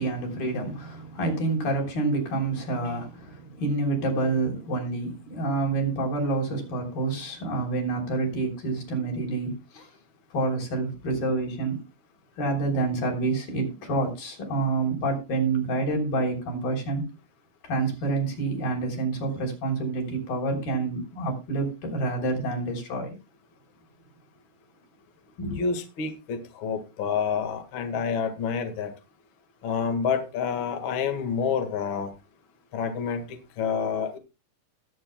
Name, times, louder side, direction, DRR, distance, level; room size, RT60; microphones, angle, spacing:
voice 1, 0.0-9.9 10.3-11.8 12.4-17.1 17.6-23.2 25.4-25.6, right 3 dB, 55° left, 4.9 m, -28 dB
voice 2, 25.5-28.9 29.6-32.1 32.7-33.3 33.6-34.2, left 6 dB, 85° left, 1.1 m, -28 dB
20.0 x 8.0 x 2.2 m
omnidirectional pair, 5.2 m